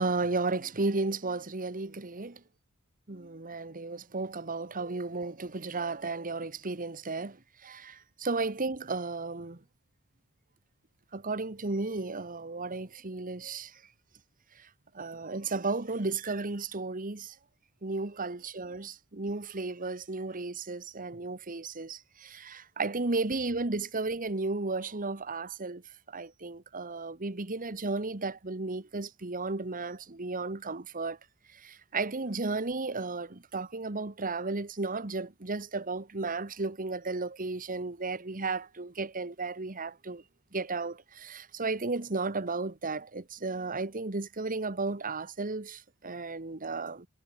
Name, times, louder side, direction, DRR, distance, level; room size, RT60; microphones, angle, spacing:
voice 1, 0.0-2.4 3.1-9.6 11.1-13.8 14.6-14.7 14.9-17.3 17.8-25.8 26.1-31.2 31.5-40.2 40.5-47.1, right 3 dB, 40° right, 1.4 m, -34 dB
head